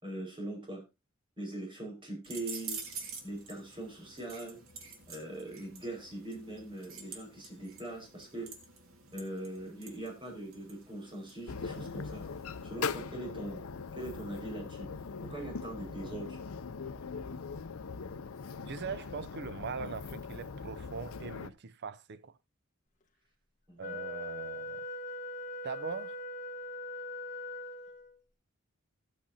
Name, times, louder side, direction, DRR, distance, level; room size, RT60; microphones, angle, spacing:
voice 1, 0.0-0.8 1.4-2.8 3.2-4.6 5.1-8.5 9.1-12.2 12.6-13.6 14.0-14.9 15.2-16.4 23.7-24.0, right 1 dB, 25° right, 5.3 m, -41 dB
sound 1, 2.2-12.6, right 5 dB, 75° right, 2.0 m, -48 dB
sound 2, 11.5-21.5, left 5 dB, 80° left, 0.6 m, -41 dB
voice 2, 18.7-22.4 23.8-24.8 25.6-26.2, right 5 dB, 55° right, 0.5 m, -41 dB
Wind instrument woodwind instrument, 23.8-28.2, left 1 dB, 35° left, 1.5 m, -41 dB
14.5 x 8.6 x 2.8 m
head